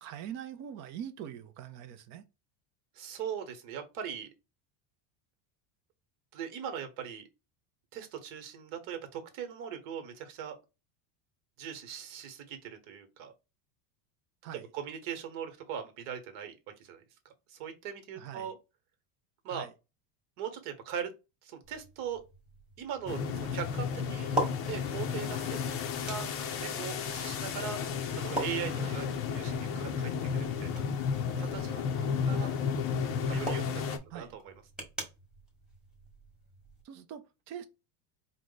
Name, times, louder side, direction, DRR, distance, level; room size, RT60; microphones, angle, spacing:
voice 1, 0.0-2.2 14.4-14.6 18.2-18.5 19.5-19.7 28.8-29.0 34.1-34.4 36.8-37.7, right 9 dB, 35° right, 0.5 m, -43 dB
voice 2, 2.9-4.3 6.3-7.3 7.9-10.6 11.6-13.3 14.5-18.6 19.4-19.7 20.4-21.1 21.4-22.2 22.8-25.6 26.0-26.3 26.6-27.8 28.1-30.8 31.4-32.5 33.3-33.8 34.1-34.6, right 8 dB, 60° right, 1.3 m, -40 dB
sound 1, 21.6-36.8, right 1 dB, ahead, 1.1 m, -43 dB
sound 2, 23.1-34.0, left 6 dB, 30° left, 0.5 m, -33 dB
4.6 x 2.1 x 3.9 m
cardioid pair, 150°, 47 cm